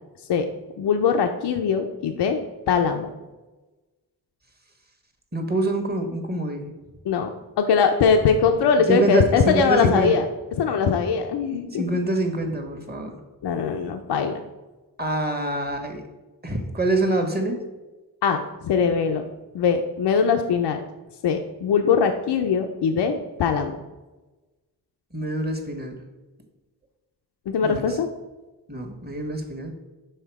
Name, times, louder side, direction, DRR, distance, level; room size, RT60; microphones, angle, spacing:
voice 1, 0.8-2.4 2.7-3.1 7.1-7.3 7.6-10.2 10.6-11.8 13.4-14.3 18.2-19.2 19.5-20.8 21.2-23.1 23.4-23.8 27.5-28.1, left 6 dB, 85° left, 5 dB, 0.5 m, -21 dB
voice 2, 5.3-6.7 8.9-10.1 11.5-13.2 15.0-16.0 16.4-17.6 25.1-25.9 27.6-28.0 28.7-29.7, right 1 dB, 25° right, 4 dB, 1.2 m, -25 dB
5.6 x 3.9 x 4.6 m, 1.2 s
cardioid pair, 50°, 40 cm